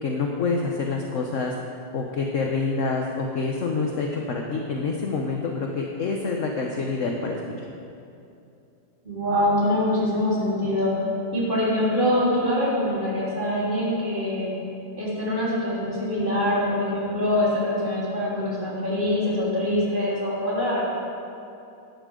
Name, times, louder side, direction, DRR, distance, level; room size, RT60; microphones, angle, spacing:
voice 1, 0.0-1.5 1.9-7.4, left 4 dB, 50° left, 1 dB, 1.0 m, -27 dB
voice 2, 9.0-10.9 11.3-14.5 15.0-21.0, left 1 dB, 25° right, -8 dB, 3.8 m, -24 dB
16.5 x 12.5 x 3.8 m, 2.7 s
omnidirectional pair, 2.1 m